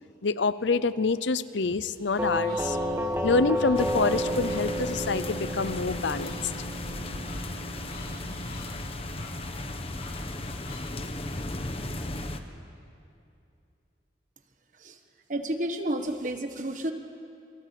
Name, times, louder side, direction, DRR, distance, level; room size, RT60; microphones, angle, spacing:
voice 1, 0.2-2.8 3.2-6.3, left 4 dB, 80° left, 15 dB, 0.7 m, -26 dB
sound 1, 1.9-10.9, left 2 dB, 55° left, 5.2 m, -50 dB
Doorbell, 2.2-11.0, equal, 10° right, 1.7 m, -32 dB
sound 2, 3.8-12.4, left 2 dB, 30° left, 1.3 m, -36 dB
voice 2, 15.3-16.9, right 1 dB, 45° right, 5 dB, 1.4 m, -31 dB
28.5 x 23.5 x 8.5 m, 2.6 s
head